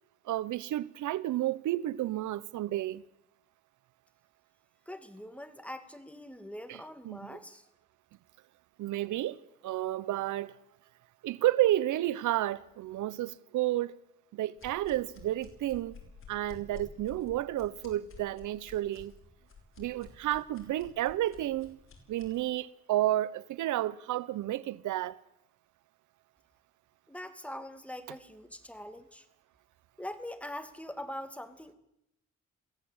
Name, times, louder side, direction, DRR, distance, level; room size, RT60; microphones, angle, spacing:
voice 1, 0.3-3.0 6.7-6.8 7.0-7.4 8.8-10.5 11.2-14.0 14.3-16.0 16.3-19.1 19.8-21.8 22.1-25.2, right 14 dB, 80° right, 0.8 m, -31 dB
voice 2, 4.9-7.6 27.1-29.3 30.0-31.7, left 1 dB, 5° left, 2.4 m, -43 dB
sound 1, 14.6-22.4, left 5 dB, 45° left, 6.3 m, -52 dB
22.5 x 16.0 x 8.8 m
cardioid pair, 90°, 30 cm